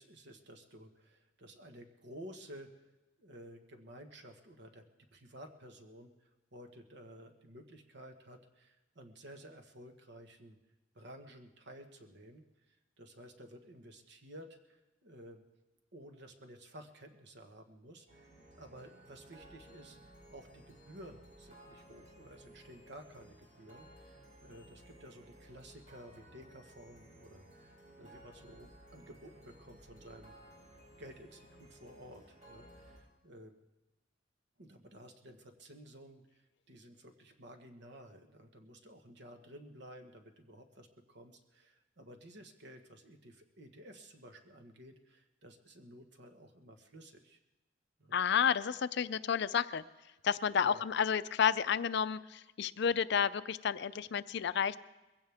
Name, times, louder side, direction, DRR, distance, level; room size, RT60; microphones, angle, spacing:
voice 1, 0.0-2.9 3.2-4.8 5.1-10.6 10.9-15.4 15.9-18.3 18.6-20.0 20.3-30.6 31.0-33.5 34.6-47.4 48.0-48.2 50.5-50.8, right 1 dB, 65° right, 5 dB, 1.5 m, -53 dB
sound 1, 18.1-33.0, right 1 dB, 40° right, 7.5 m, -57 dB
voice 2, 48.1-49.8 50.2-54.8, left 7 dB, 65° left, 15 dB, 0.5 m, -31 dB
21.5 x 16.0 x 3.6 m, 1.1 s
head